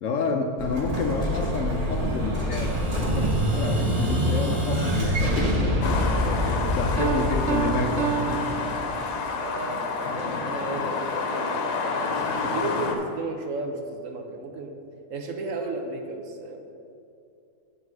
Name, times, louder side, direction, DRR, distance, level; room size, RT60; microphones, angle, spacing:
voice 1, 0.0-5.6 6.4-8.4, left 3 dB, 65° left, 4 dB, 0.9 m, -29 dB
Explosion, 0.6-9.2, equal, 25° right, 1.2 m, -26 dB
sound 1, 5.8-13.0, left 4 dB, 85° left, 1.4 m, -29 dB
voice 2, 6.2-6.8 8.5-8.6 9.4-12.2 12.5-14.7 15.1-16.6, right 3 dB, 60° right, 3 dB, 1.1 m, -34 dB
Piano, 7.0-9.4, right 9 dB, 80° right, 0.5 m, -30 dB
8.7 x 6.1 x 4.7 m, 2.5 s
omnidirectional pair, 1.7 m